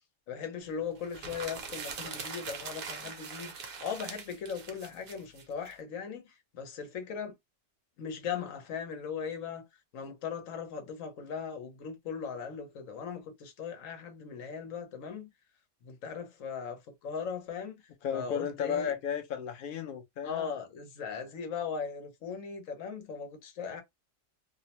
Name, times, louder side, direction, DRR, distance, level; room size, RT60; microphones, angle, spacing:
voice 1, 0.3-3.5 3.8-7.3 8.0-9.7 9.9-15.3 15.8-17.8 18.1-18.9 20.2-23.8, left 6 dB, 85° left, 1.2 m, -38 dB
sound 1, 1.0-5.7, right 5 dB, 55° right, 0.7 m, -42 dB
voice 2, 18.0-20.6, left 8 dB, 55° left, 0.7 m, -34 dB
2.7 x 2.1 x 2.8 m
omnidirectional pair, 1.3 m